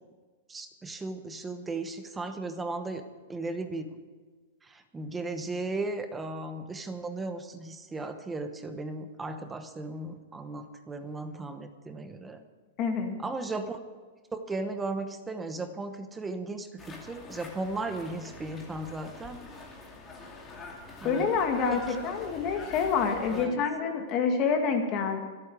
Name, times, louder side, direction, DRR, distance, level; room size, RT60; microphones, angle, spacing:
voice 1, 0.5-3.0 3.3-4.0 4.6-12.4 13.2-13.8 14.3-19.4 21.0-21.3 21.7-21.8 23.3-23.6, right 2 dB, 10° right, 8 dB, 1.0 m, -36 dB
voice 2, 12.8-13.1 21.0-25.2, left 5 dB, 30° left, 4 dB, 2.1 m, -27 dB
sound 1, 16.8-23.5, left 3 dB, 15° left, 2.4 m, -45 dB
26.0 x 8.9 x 4.8 m, 1.5 s
supercardioid pair, 160°, 0 cm